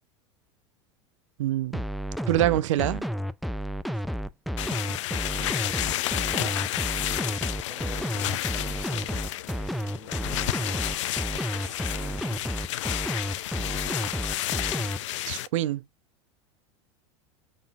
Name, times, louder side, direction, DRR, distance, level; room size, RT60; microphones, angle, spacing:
voice 1, 1.4-1.8 2.3-3.0 15.3-15.8, right 14 dB, 80° right, 0.5 m, -25 dB
sound 1, 1.7-15.0, equal, ahead, 0.4 m, -31 dB
sound 2, 4.6-15.5, left 14 dB, 75° left, 0.4 m, -31 dB
voice 2, 5.1-9.1 9.8-10.6 11.5-12.4, right 3 dB, 15° right, 1.6 m, -48 dB
4.1 x 3.8 x 2.4 m
hypercardioid pair, 95°, 16 cm